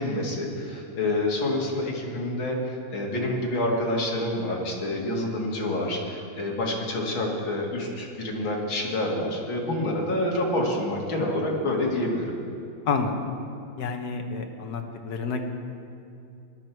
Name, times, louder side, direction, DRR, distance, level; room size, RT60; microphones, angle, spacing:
voice 1, 0.0-12.3, left 1 dB, 75° left, -2 dB, 2.9 m, -27 dB
voice 2, 13.8-15.4, left 5 dB, 55° left, 4 dB, 1.5 m, -29 dB
18.5 x 11.5 x 4.6 m, 2.7 s
omnidirectional pair, 2.2 m